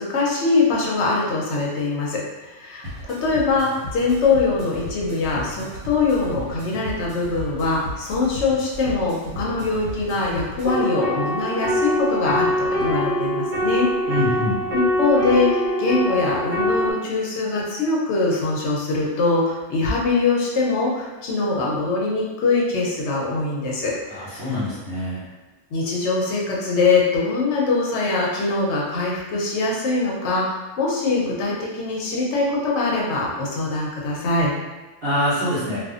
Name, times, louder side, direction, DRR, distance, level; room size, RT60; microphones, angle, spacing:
voice 1, 0.0-13.9 14.7-24.6 25.7-34.5, left 3 dB, 60° left, -4 dB, 0.7 m, -23 dB
sound 1, 2.8-10.8, equal, 85° right, 1.1 m, -36 dB
sound 2, 10.6-16.9, equal, 15° right, 0.8 m, -23 dB
voice 2, 14.1-14.6 24.1-25.2 35.0-35.8, left 1 dB, 55° right, -12 dB, 1.0 m, -24 dB
2.5 x 2.3 x 2.4 m, 1.2 s
omnidirectional pair, 1.6 m